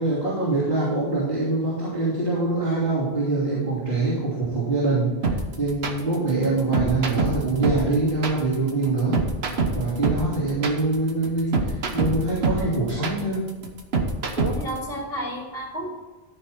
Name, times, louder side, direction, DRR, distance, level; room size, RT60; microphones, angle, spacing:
voice 1, 0.0-9.2 9.7-13.4, right 3 dB, 60° right, -9 dB, 3.2 m, -24 dB
sound 1, 5.2-14.8, right 3 dB, 75° right, 1.3 m, -25 dB
voice 2, 14.4-16.0, equal, 65° left, -3 dB, 2.8 m, -31 dB
13.5 x 5.6 x 4.4 m, 1.3 s
omnidirectional pair, 1.1 m